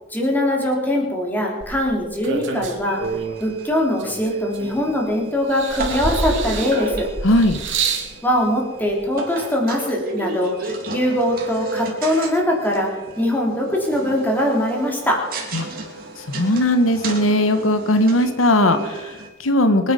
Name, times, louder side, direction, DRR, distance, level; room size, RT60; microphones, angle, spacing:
voice 1, 0.1-3.1 3.4-7.1 8.2-15.3, left 1 dB, 10° left, -1 dB, 3.5 m, -22 dB
sound 1, 1.6-3.4 4.0-5.1 5.5-8.1 9.0-9.1, right 4 dB, 65° right, 2.7 m, -27 dB
sound 2, 2.8-19.3, right 2 dB, 45° right, 3.2 m, -34 dB
voice 2, 7.2-7.6 15.5-15.7 16.2-19.9, left 1 dB, 90° left, 8 dB, 1.4 m, -18 dB
25.0 x 9.9 x 5.3 m, 1.2 s
head